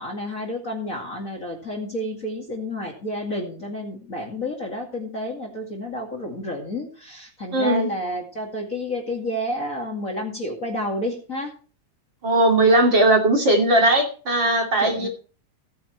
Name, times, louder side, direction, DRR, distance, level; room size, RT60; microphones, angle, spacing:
voice 1, 0.0-11.5 14.8-15.1, left 1 dB, 30° left, 0 dB, 2.4 m, -30 dB
voice 2, 7.5-7.9 12.2-15.1, right 1 dB, 40° right, 1 dB, 3.1 m, -18 dB
17.5 x 9.6 x 3.1 m, 0.37 s
omnidirectional pair, 3.4 m